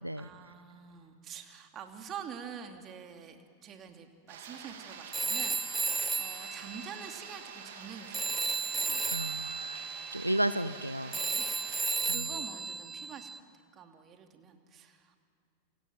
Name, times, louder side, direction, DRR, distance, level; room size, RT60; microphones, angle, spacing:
voice 1, 0.2-8.5 11.1-11.8 12.0-13.3 13.7-15.2, right 7 dB, 30° right, 5 dB, 2.8 m, -47 dB
sound 1, 4.3-11.9, right 6 dB, 60° right, 3.6 m, -47 dB
Telephone, 5.1-7.9 8.1-13.4, right 4 dB, 15° right, 0.8 m, -34 dB
voice 2, 9.1-9.8 10.1-11.1 12.1-12.3, right 1 dB, 90° right, 15 dB, 0.6 m, -33 dB
28.0 x 27.0 x 7.7 m, 2.2 s
figure-of-eight pair, 90°, 0 cm